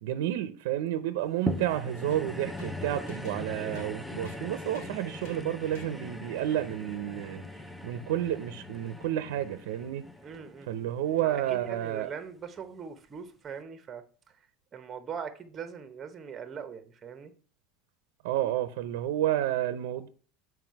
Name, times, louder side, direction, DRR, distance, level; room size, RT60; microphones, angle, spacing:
voice 1, 0.0-7.4 7.8-10.0 10.7-12.1 18.2-20.1, right 12 dB, 85° right, 0.6 m, -30 dB
sound 1, 1.5-11.9 12.6-12.7, left 2 dB, 5° left, 0.4 m, -41 dB
sound 2, 2.1-9.9, left 3 dB, 85° left, 2.6 m, -52 dB
voice 2, 10.2-10.7 11.2-14.0 14.7-17.3, right 7 dB, 20° right, 0.8 m, -41 dB
7.9 x 4.7 x 4.6 m
cardioid pair, 170°, 0 cm